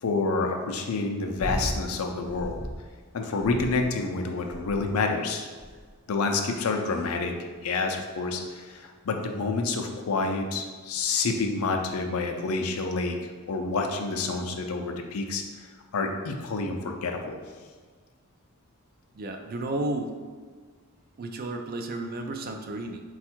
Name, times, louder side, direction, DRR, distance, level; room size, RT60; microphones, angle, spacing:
voice 1, 0.0-2.6 3.1-5.5 6.1-7.3 7.6-13.2 13.5-15.4 15.9-17.4, left 3 dB, 70° left, 4 dB, 0.5 m, -28 dB
sound 1, 1.4-1.8 2.3-2.8 3.4-4.0 4.5-5.0 5.6-5.9 6.6-7.0 8.0-8.1, equal, 10° right, 0.7 m, -35 dB
voice 2, 19.1-20.1 21.2-23.0, right 2 dB, 45° right, 5 dB, 0.4 m, -32 dB
4.2 x 2.3 x 4.4 m, 1.5 s
head